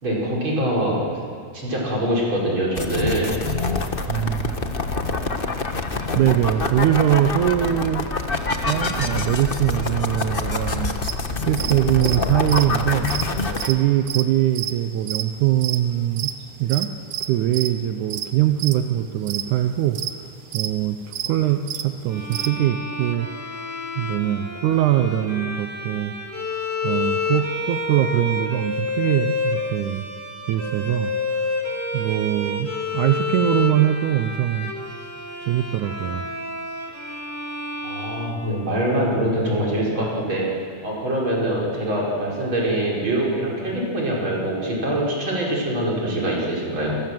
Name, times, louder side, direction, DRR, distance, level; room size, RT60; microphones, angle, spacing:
voice 1, 0.0-1.1 1.5-3.4 37.8-47.0, right 1 dB, 40° right, -3 dB, 6.2 m, -24 dB
sound 1, 2.8-13.7, left 3 dB, 65° left, 0.5 m, -26 dB
voice 2, 4.1-4.5 6.2-8.1 8.7-10.9 11.5-16.3 16.6-16.9 17.3-20.3 20.5-23.3 24.0-26.1 26.8-30.1 30.5-31.5 31.9-34.7 35.4-36.3, right 12 dB, 80° right, 7 dB, 2.3 m, -22 dB
sound 2, 11.0-22.5, right 11 dB, 65° right, 1.7 m, -30 dB
Bowed string instrument, 22.1-39.1, left 3 dB, 5° left, 2.0 m, -29 dB
28.5 x 21.5 x 7.7 m, 2.2 s
omnidirectional pair, 3.5 m